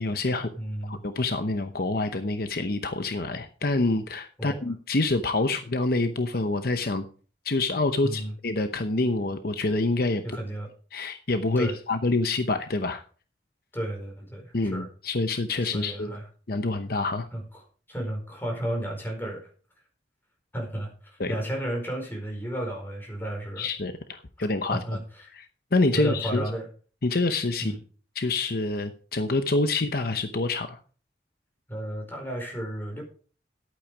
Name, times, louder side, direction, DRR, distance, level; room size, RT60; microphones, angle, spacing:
voice 1, 0.0-0.5 0.8-7.1 7.4-10.2 10.9-13.0 14.5-16.2 16.5-17.3 21.2-21.3 23.6-24.8 25.3-26.4 27.0-27.7 28.2-30.8, left 2 dB, 55° left, 8 dB, 0.8 m, -27 dB
voice 2, 0.5-1.0 4.4-4.6 8.0-8.3 10.2-10.7 11.6-11.8 13.7-14.9 15.7-16.2 17.3-17.4 17.9-19.4 20.5-23.7 24.7-25.3 25.9-26.7 27.6-27.8 31.7-33.0, right 1 dB, 10° left, 1 dB, 4.7 m, -33 dB
12.0 x 8.7 x 5.0 m, 0.40 s
head